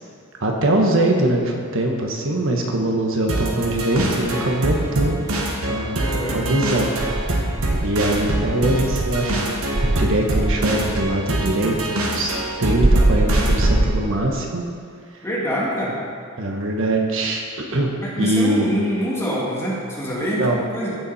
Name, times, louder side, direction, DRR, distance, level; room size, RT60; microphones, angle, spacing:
voice 1, 0.4-5.2 5.7-6.9 7.8-9.6 9.8-14.6 16.4-17.4 17.7-17.9 18.2-18.7 20.2-20.6, right 1 dB, 65° right, 1 dB, 1.3 m, -22 dB
sound 1, 3.3-14.0, right 1 dB, 80° right, 1.6 m, -24 dB
voice 2, 6.0-6.4 15.2-16.0 18.0-21.0, equal, 10° left, -6 dB, 2.4 m, -25 dB
Insect, 7.0-9.3 9.7-11.2 12.8-14.5, right 2 dB, 25° right, 0.5 m, -22 dB
15.0 x 7.3 x 4.2 m, 2.4 s
head